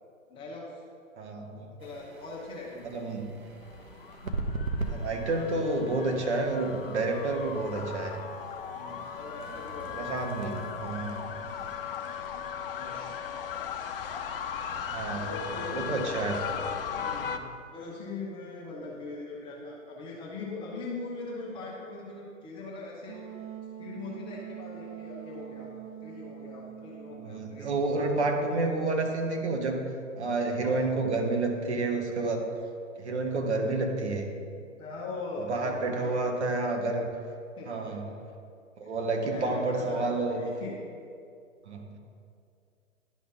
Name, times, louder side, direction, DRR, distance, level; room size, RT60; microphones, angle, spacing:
voice 1, 0.3-0.8 1.8-2.8 5.3-5.4 8.7-10.4 11.1-11.2 12.7-13.1 15.1-15.9 16.3-16.5 16.9-17.4 17.7-23.3 23.8-25.7 26.0-27.7 30.6-31.1 34.8-36.4 37.5-38.2 38.8-38.9 39.2-40.8, left 3 dB, 15° left, -4 dB, 0.8 m, -41 dB
voice 2, 1.2-1.8 2.8-3.4 4.9-8.2 10.0-11.2 11.6-11.7 14.9-15.2 15.7-16.4 27.2-29.8 30.2-32.5 33.0-34.3 35.5-37.1 37.7-38.0 38.8-40.5 41.7-42.0, right 2 dB, 55° right, 3 dB, 1.2 m, -29 dB
sound 1, 1.8-12.5, right 3 dB, 85° right, 1.0 m, -41 dB
sound 2, 3.6-17.4, left 7 dB, 45° left, 0.5 m, -37 dB
Wind instrument woodwind instrument, 23.1-27.9, right 10 dB, 40° right, 0.5 m, -44 dB
11.0 x 4.1 x 3.8 m, 2.4 s
figure-of-eight pair, 125°, 40 cm